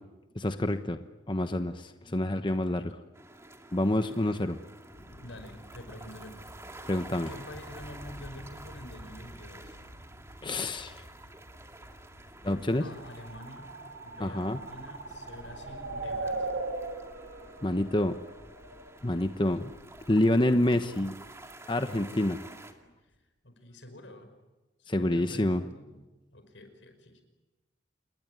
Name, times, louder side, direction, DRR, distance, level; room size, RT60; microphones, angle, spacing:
voice 1, 0.3-1.0 1.3-2.8 3.7-4.6 6.9-7.3 10.4-11.0 12.4-12.9 14.2-14.6 17.6-18.1 19.0-19.7 20.1-21.2 21.7-22.4 24.9-25.6, left 1 dB, 25° left, 8 dB, 1.0 m, -27 dB
voice 2, 2.3-3.0 5.1-6.4 6.8-6.9 7.3-9.8 12.8-13.7 14.0-16.6 23.0-24.3 24.8-27.2, left 1 dB, 85° left, 8 dB, 5.5 m, -48 dB
sound 1, 3.1-22.7, right 2 dB, 15° right, 2.4 m, -50 dB
sound 2, 4.9-23.2, equal, 70° left, 6.3 m, -53 dB
sound 3, 13.1-18.9, right 3 dB, 80° right, 3.3 m, -38 dB
28.5 x 21.5 x 9.5 m, 1.1 s
head